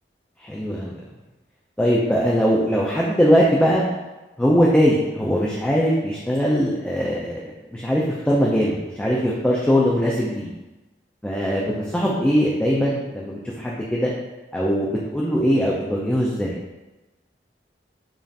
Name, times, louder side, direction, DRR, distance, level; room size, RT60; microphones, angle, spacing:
voice 1, 0.4-0.9 1.8-3.8 4.4-10.5 11.2-14.1 14.5-16.6, equal, 5° left, -4 dB, 0.3 m, -21 dB
5.1 x 2.4 x 2.7 m, 1.1 s
head